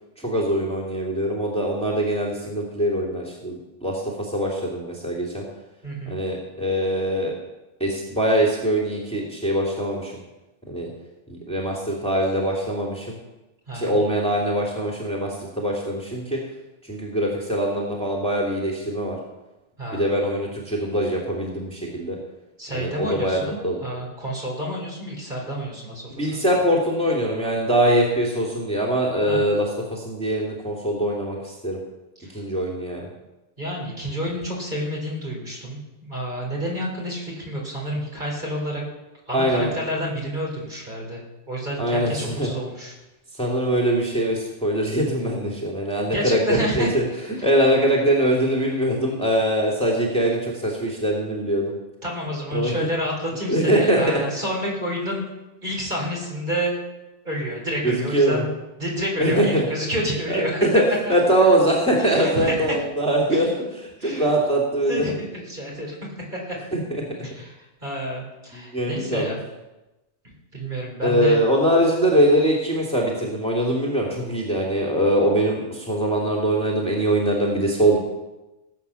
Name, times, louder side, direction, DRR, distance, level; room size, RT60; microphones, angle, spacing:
voice 1, 0.2-5.4 6.1-7.3 7.8-10.1 10.7-10.9 11.3-13.2 13.7-15.3 15.6-16.4 16.9-19.2 19.9-22.2 22.7-23.4 23.6-23.8 26.2-31.8 32.3-33.1 39.3-39.7 41.8-42.5 43.4-47.0 47.4-51.7 52.5-52.7 53.5-54.0 57.8-58.4 59.2-59.6 60.3-65.0 66.7-66.8 68.5-69.2 71.0-78.0, right 1 dB, 5° left, -3 dB, 2.6 m, -22 dB
voice 2, 5.8-6.2 13.7-14.0 19.8-20.1 22.6-26.4 29.3-29.5 32.2-32.4 33.6-38.8 39.3-43.0 46.1-47.5 52.0-55.2 55.6-56.8 57.2-58.5 58.8-60.7 61.0-61.1 62.0-62.8 63.3-63.5 64.0-64.3 64.9-66.0 66.3-66.6 67.2-69.4 70.2-71.4 72.1-72.2, equal, 40° right, -2 dB, 4.5 m, -29 dB
17.5 x 8.3 x 6.9 m, 1.0 s
omnidirectional pair, 1.2 m